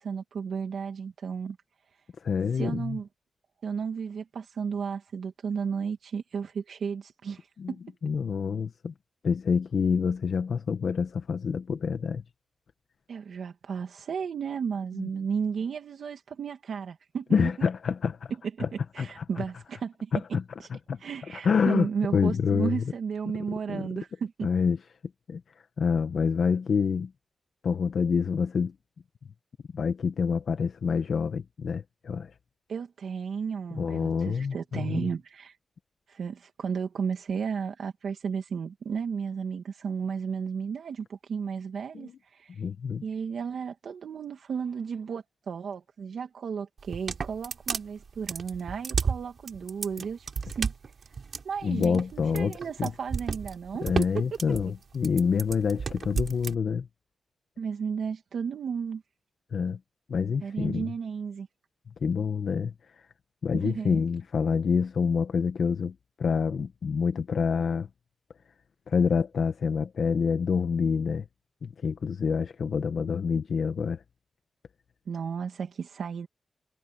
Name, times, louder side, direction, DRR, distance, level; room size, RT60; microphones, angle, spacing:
voice 1, 0.0-1.6 2.5-3.1 3.6-7.8 13.1-17.7 18.7-20.1 20.6-20.7 21.0-24.5 32.7-35.6 36.1-42.6 43.0-50.7 51.4-54.1 57.6-59.0 60.4-61.5 63.5-64.0 75.1-76.3, right 6 dB, 70° right, 2.1 m, -33 dB
voice 2, 2.2-3.0 7.6-7.7 8.0-8.9 9.2-12.2 15.0-15.1 17.3-18.3 18.6-18.7 19.0-19.4 20.1-20.4 20.9-21.0 21.4-22.8 23.7-23.9 24.4-24.8 25.3-25.4 25.8-27.1 27.6-28.7 29.7-32.3 33.7-35.1 41.9-42.1 42.6-43.0 51.6-52.9 53.8-56.9 59.5-59.8 60.1-60.9 62.0-62.7 63.4-67.9 68.9-71.2 71.6-74.0, left 6 dB, 60° left, 1.0 m, -27 dB
sound 1, 46.8-56.5, right 5 dB, 50° right, 3.2 m, -32 dB
wide cardioid pair, 160°, 0 cm